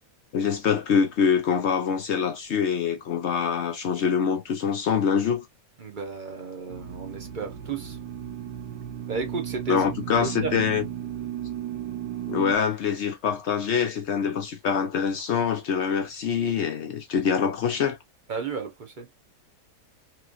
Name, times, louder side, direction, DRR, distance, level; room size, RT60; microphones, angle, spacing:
voice 1, 0.3-5.4 9.7-10.8 12.2-18.0, left 7 dB, 65° left, 0.7 m, -25 dB
voice 2, 5.8-8.0 9.1-9.8 10.2-10.6 18.3-19.1, right 4 dB, 45° right, 0.6 m, -33 dB
sound 1, 6.7-12.6, right 10 dB, 90° right, 1.3 m, -35 dB
3.0 x 3.0 x 2.3 m
omnidirectional pair, 1.8 m